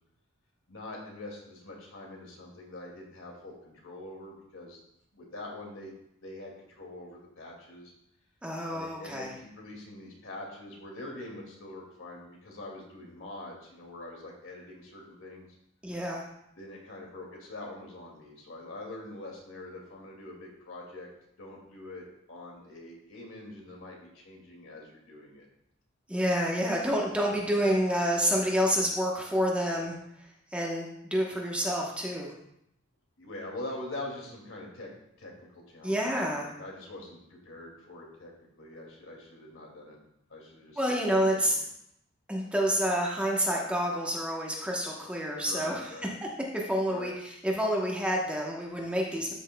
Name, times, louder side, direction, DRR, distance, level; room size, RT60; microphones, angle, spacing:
voice 1, 0.7-4.8 5.1-5.9 6.2-7.9 8.7-15.5 16.6-21.1 21.4-25.5 27.6-27.8 33.2-34.9 35.2-38.3 38.6-40.0 40.3-41.0 41.3-41.6 45.4-46.1 46.9-47.1, left 2 dB, 65° left, -1 dB, 2.3 m, -44 dB
voice 2, 8.4-9.3 15.8-16.2 26.1-30.0 30.5-32.3 35.8-36.5 40.8-41.6 42.3-45.8 46.5-49.3, equal, 5° right, -2 dB, 1.0 m, -28 dB
13.0 x 6.3 x 2.3 m, 0.77 s
head